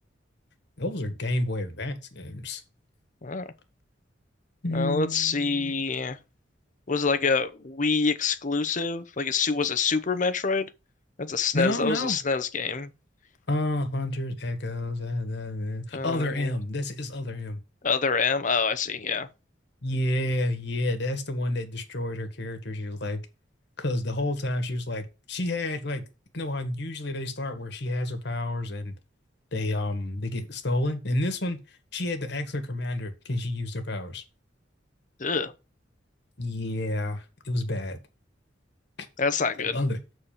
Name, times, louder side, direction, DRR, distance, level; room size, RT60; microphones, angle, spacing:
voice 1, 0.8-2.6 4.6-5.8 11.5-12.2 13.5-17.6 19.8-23.2 23.8-26.0 26.3-28.9 29.5-31.6 31.9-34.2 36.4-38.0 39.7-40.0, left 1 dB, 65° left, 1.7 m, -30 dB
voice 2, 4.7-6.2 6.9-10.7 11.2-12.9 15.9-16.5 17.8-19.3 35.2-35.5 39.2-39.8, left 5 dB, 45° left, 0.9 m, -26 dB
7.4 x 4.3 x 6.8 m
head